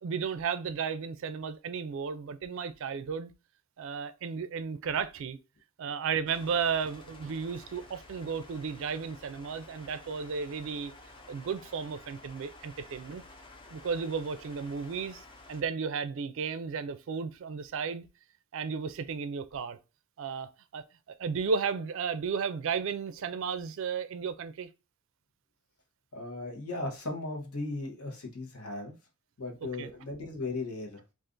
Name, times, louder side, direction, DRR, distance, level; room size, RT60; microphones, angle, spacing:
voice 1, 0.0-3.3 3.8-5.4 5.8-10.9 11.3-13.2 13.7-18.1 18.5-19.8 20.2-24.7 29.8-29.9, right 6 dB, 60° right, 0.3 m, -34 dB
sound 1, 6.3-15.6, left 2 dB, 20° left, 0.4 m, -52 dB
voice 2, 26.1-28.9 29.4-31.0, left 2 dB, 85° left, 1.0 m, -37 dB
2.5 x 2.5 x 3.6 m
head